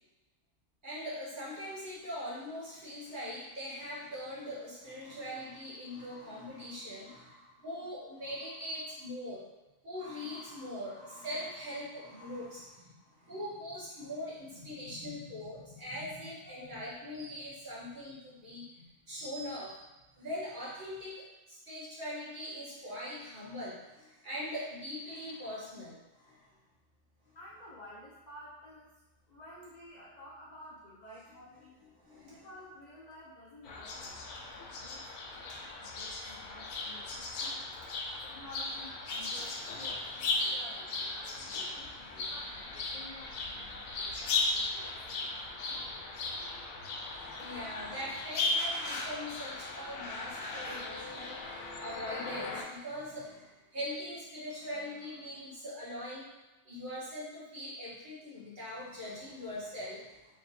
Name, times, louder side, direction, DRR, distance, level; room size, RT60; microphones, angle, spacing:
voice 1, 0.8-9.4 9.8-19.8 20.2-26.5 31.9-32.5 35.3-35.7 38.1-38.2 39.3-39.4 39.8-39.9 40.3-40.6 41.0-41.1 41.5-42.3 47.2-56.3 56.6-60.2, left 1 dB, 40° right, -8 dB, 1.3 m, -42 dB
voice 2, 27.3-29.0 29.3-31.8 32.0-37.6 38.2-45.3, left 1 dB, 50° left, -5 dB, 0.5 m, -53 dB
sound 1, 33.6-52.6, left 3 dB, 90° left, 1.0 m, -37 dB
3.2 x 2.7 x 4.1 m, 1.1 s
omnidirectional pair, 1.4 m